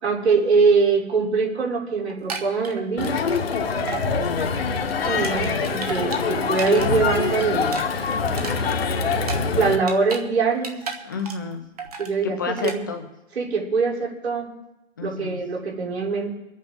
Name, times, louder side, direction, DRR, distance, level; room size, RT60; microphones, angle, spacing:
voice 1, 0.0-3.2 5.1-7.8 9.5-10.7 12.0-12.4 12.6-12.8 13.4-14.5 15.0-16.3, right 4 dB, 55° right, -1 dB, 3.8 m, -22 dB
sound 1, 2.1-3.6 3.9-4.1 4.4-6.9 7.2-10.3 10.5-11.5 11.8-12.1 12.6-12.8, right 5 dB, 30° right, 1.4 m, -34 dB
Crowd, 3.0-9.8, left 5 dB, 50° left, 1.4 m, -24 dB
voice 2, 4.1-4.6 5.2-5.7 11.0-11.6 12.2-13.1 15.0-15.4, left 5 dB, 15° left, 3 dB, 0.9 m, -31 dB
24.5 x 9.0 x 3.8 m, 0.95 s
hypercardioid pair, 175°, 39 cm